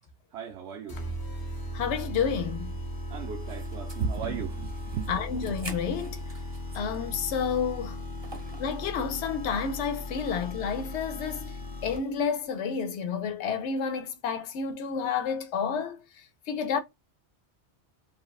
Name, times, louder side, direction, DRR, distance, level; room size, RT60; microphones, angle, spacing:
voice 1, 0.3-1.0 3.1-5.3 8.3-8.4, right 6 dB, 80° right, 0.9 m, -35 dB
sound 1, 0.9-12.3, left 1 dB, 25° left, 0.5 m, -37 dB
voice 2, 1.7-2.7 5.1-6.2 6.7-8.0 8.6-11.5 11.8-16.0 16.5-16.8, left 6 dB, 80° left, 0.9 m, -30 dB
sound 2, 3.4-7.1 7.4-7.5 8.2-8.7, right 3 dB, 30° right, 0.7 m, -46 dB
3.2 x 2.1 x 2.3 m
omnidirectional pair, 1.1 m